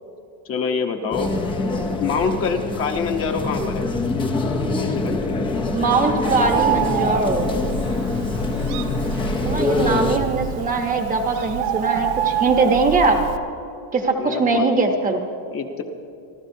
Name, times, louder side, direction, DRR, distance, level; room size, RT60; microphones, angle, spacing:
voice 1, 0.5-1.4 2.0-3.8 4.8-5.5 14.1-14.7 15.5-15.8, left 5 dB, 30° left, 4 dB, 0.9 m, -25 dB
sound 1, 1.1-10.2, left 3 dB, 10° left, 0.5 m, -25 dB
voice 2, 5.7-7.5 9.4-13.2 13.9-15.2, right 3 dB, 20° right, 3 dB, 0.8 m, -21 dB
Bird, 6.2-13.4, right 10 dB, 60° right, 0.8 m, -27 dB
28.0 x 12.5 x 2.7 m, 2.6 s
cardioid pair, 170°, 46 cm